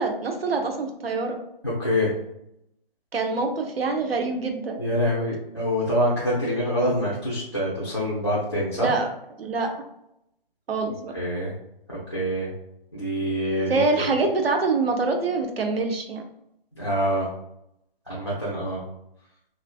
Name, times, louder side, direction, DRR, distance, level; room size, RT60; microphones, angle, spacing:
voice 1, 0.0-1.4 3.1-4.8 8.8-9.1 9.4-9.7 10.7-11.1 13.7-16.2, right 3 dB, 90° right, 4 dB, 0.7 m, -25 dB
voice 2, 1.6-2.1 4.8-8.9 11.1-11.5 11.9-12.5 12.9-13.8 16.8-17.3 18.1-18.8, equal, 30° left, -8 dB, 0.4 m, -25 dB
3.1 x 2.4 x 2.3 m, 0.80 s
hypercardioid pair, 175°, 29 cm